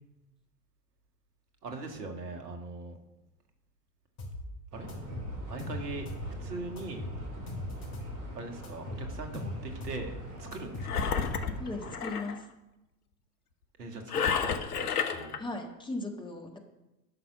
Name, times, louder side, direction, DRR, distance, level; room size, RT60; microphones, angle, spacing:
voice 1, 1.6-3.0 4.7-4.9 5.5-7.1 8.3-11.0 13.8-15.4, right 2 dB, 70° right, 5 dB, 1.8 m, -41 dB
sound 1, 4.2-4.4 4.9-6.3 6.8-8.2 8.6-10.1 10.5-11.7, left 1 dB, 45° left, 4.2 m, -39 dB
sound 2, 4.7-11.9, right 1 dB, 35° right, 4.1 m, -44 dB
Engine, 10.8-12.4 14.1-15.4, left 6 dB, 65° left, 1.1 m, -31 dB
voice 2, 11.6-12.4 15.4-16.6, left 2 dB, 10° left, 2 dB, 1.5 m, -37 dB
12.5 x 5.8 x 6.1 m, 0.98 s
figure-of-eight pair, 85°, 48 cm